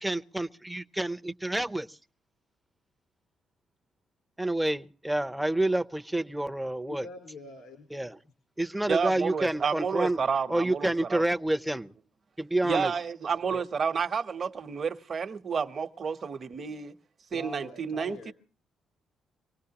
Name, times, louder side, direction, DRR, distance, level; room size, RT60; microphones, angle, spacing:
voice 1, 0.0-2.0 4.4-7.1 7.9-8.2 8.6-10.2 10.5-11.9 12.4-12.9 13.5-13.6, right 1 dB, 5° right, 0.7 m, -29 dB
voice 2, 6.8-8.1 17.3-18.3, left 3 dB, 80° left, 4.5 m, -44 dB
voice 3, 8.9-11.2 12.6-16.9 17.3-18.3, right 6 dB, 45° right, 1.0 m, -30 dB
25.0 x 18.0 x 2.9 m
cardioid pair, 90°, 0 cm